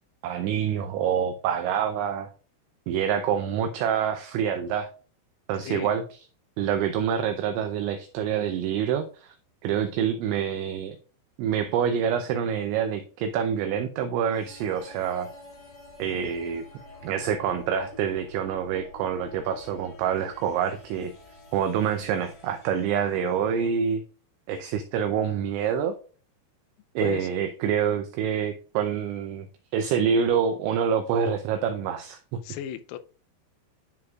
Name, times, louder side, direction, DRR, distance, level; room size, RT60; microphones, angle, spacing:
voice 1, 0.2-2.3 2.9-4.9 5.5-6.0 6.6-9.3 9.6-11.0 11.4-15.3 16.0-16.6 17.0-21.1 21.5-24.0 24.5-25.9 27.0-29.5 29.7-32.4, right 8 dB, 85° right, 2.6 m, -26 dB
sound 1, 14.3-23.7, left 2 dB, 55° left, 1.9 m, -48 dB
voice 2, 32.4-33.0, left 11 dB, 85° left, 3.3 m, -34 dB
11.0 x 4.9 x 2.3 m
omnidirectional pair, 6.0 m